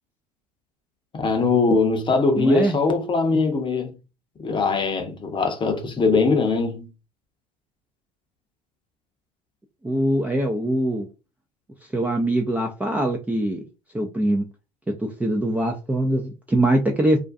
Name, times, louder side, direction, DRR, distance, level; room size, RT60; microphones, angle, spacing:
voice 1, 1.1-3.9 4.4-6.9, left 4 dB, 25° left, 0.7 m, -21 dB
voice 2, 2.4-2.8 9.8-11.1 11.9-13.6 13.9-14.4 15.0-17.2, right 1 dB, 10° right, 0.4 m, -22 dB
2.4 x 2.2 x 2.5 m
hypercardioid pair, 80°, 20 cm